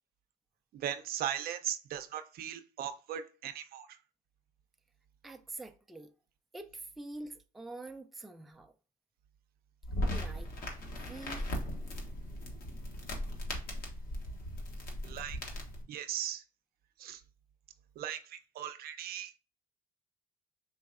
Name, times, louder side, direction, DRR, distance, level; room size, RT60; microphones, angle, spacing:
voice 1, 0.7-4.0 15.0-15.4 15.9-16.4 17.0-17.2 18.0-19.4, right 10 dB, 65° right, 0.5 m, -38 dB
voice 2, 5.2-6.1 6.5-8.7 10.1-10.6 11.1-11.5, right 2 dB, ahead, 0.3 m, -46 dB
sound 1, 9.8-15.8, equal, 60° left, 1.2 m, -38 dB
4.6 x 3.1 x 2.4 m
cardioid pair, 110°, 17 cm